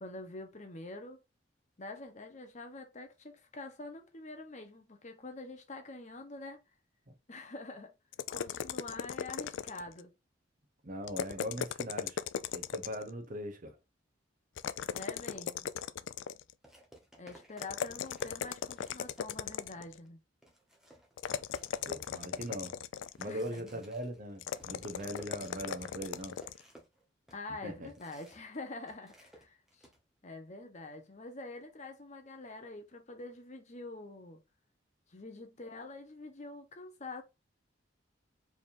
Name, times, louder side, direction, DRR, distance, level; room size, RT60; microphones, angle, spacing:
voice 1, 0.0-1.2 1.8-6.6 7.3-7.9 8.3-10.1 14.9-15.7 17.2-20.2 23.2-23.8 27.3-29.9 30.2-34.4 35.1-37.2, left 2 dB, 40° left, 1.0 m, -46 dB
sound 1, 8.1-10.0 11.0-13.1 14.6-16.5 17.6-20.0 21.2-23.4 24.4-26.6, left 8 dB, 75° left, 0.3 m, -38 dB
voice 2, 10.8-12.2 12.5-13.8 21.8-22.8 23.2-26.4 27.6-27.9, equal, 45° right, 1.0 m, -40 dB
sound 2, 15.7-15.8 16.6-19.6 20.1-20.2 20.4-28.6 28.8-30.0, right 1 dB, 5° right, 1.3 m, -58 dB
4.8 x 3.5 x 2.6 m
head